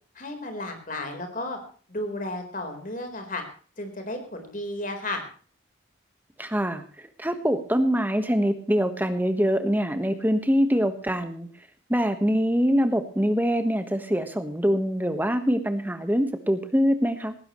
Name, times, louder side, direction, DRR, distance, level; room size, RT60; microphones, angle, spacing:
voice 1, 0.1-1.6 1.9-3.4 3.8-5.2, left 1 dB, 40° left, 5 dB, 4.2 m, -33 dB
voice 2, 6.4-11.5 11.9-17.3, equal, 10° right, 8 dB, 1.4 m, -24 dB
19.0 x 16.0 x 3.2 m, 0.42 s
head